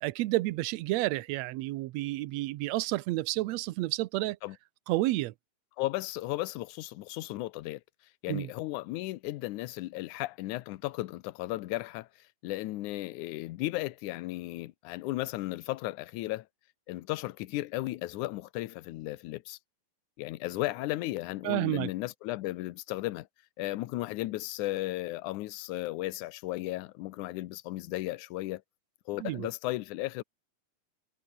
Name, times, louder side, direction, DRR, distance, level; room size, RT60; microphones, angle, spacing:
voice 1, 0.0-4.4 4.9-5.3 8.3-8.5 21.4-21.9 29.2-29.5, right 18 dB, 75° right, 1.6 m, -30 dB
voice 2, 5.8-7.8 8.2-12.1 12.4-16.5 16.9-19.6 20.2-23.3 23.6-28.6 29.1-30.2, left 17 dB, 75° left, 2.2 m, -35 dB
omnidirectional pair, 3.6 m